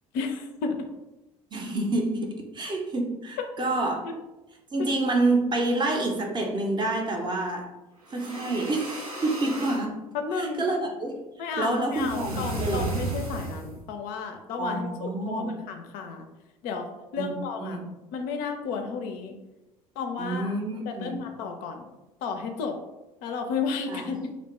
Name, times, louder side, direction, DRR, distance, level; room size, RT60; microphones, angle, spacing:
voice 1, 0.1-0.8 3.4-3.5 4.0-4.1 4.8-4.9 10.1-10.6 11.4-16.3 16.6-16.9 17.1-17.8 18.1-19.4 20.0-20.6 20.9-21.9 22.2-22.8 23.2-24.2, left 5 dB, 50° left, 5 dB, 0.4 m, -32 dB
voice 2, 1.5-4.0 4.7-7.7 8.1-10.0 10.3-12.9 14.6-15.6 17.2-17.9 20.2-21.2 23.9-24.1, right 2 dB, 25° right, 1 dB, 0.5 m, -28 dB
sound 1, 8.0-9.9 11.9-13.8, right 2 dB, 90° right, 0.5 m, -34 dB
2.5 x 2.1 x 2.9 m, 1.0 s
figure-of-eight pair, 60°, 18 cm